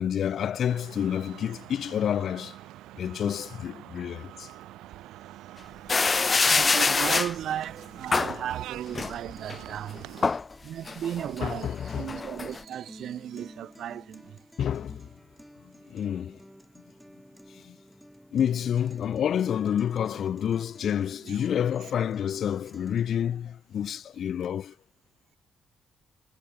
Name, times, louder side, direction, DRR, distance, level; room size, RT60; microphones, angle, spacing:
voice 1, 0.0-2.6 3.0-4.5 11.4-12.1 14.6-15.1 15.9-16.4 17.6-17.8 18.3-24.7, left 9 dB, 60° left, 1.7 m, -29 dB
sound 1, 0.7-10.3, right 15 dB, 90° right, 2.5 m, -45 dB
sound 2, 5.9-7.3 8.1-8.4 8.9-9.6 10.0-10.4 10.9-12.6, left 4 dB, 30° left, 2.3 m, -25 dB
voice 2, 6.4-14.4 21.2-21.4, right 10 dB, 70° right, 6.2 m, -36 dB
Guitar, 7.1-23.1, equal, ahead, 7.1 m, -51 dB
cardioid pair, 90°, 0 cm